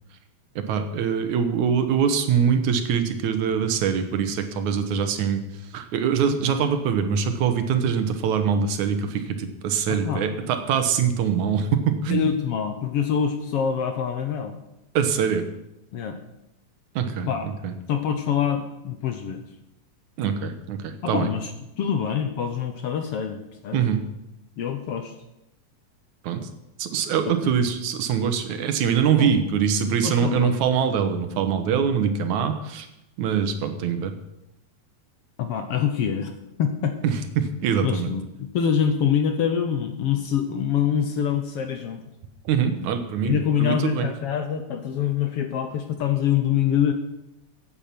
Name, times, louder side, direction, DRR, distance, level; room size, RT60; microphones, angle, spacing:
voice 1, 0.6-5.4 5.7-12.3 15.0-15.4 17.0-17.7 20.2-21.3 23.7-24.0 26.2-26.5 26.8-32.9 33.2-34.1 37.0-38.1 42.5-44.1, right 7 dB, 75° right, 8 dB, 2.5 m, -23 dB
voice 2, 9.9-10.3 12.1-14.6 15.9-16.2 17.2-17.5 17.9-19.4 21.0-21.5 21.8-23.8 24.6-25.1 27.3-27.6 29.2-29.4 30.0-30.5 35.4-37.0 37.8-42.0 43.2-46.9, left 8 dB, 65° left, 7 dB, 1.6 m, -25 dB
15.5 x 9.1 x 5.9 m, 0.88 s
omnidirectional pair, 3.4 m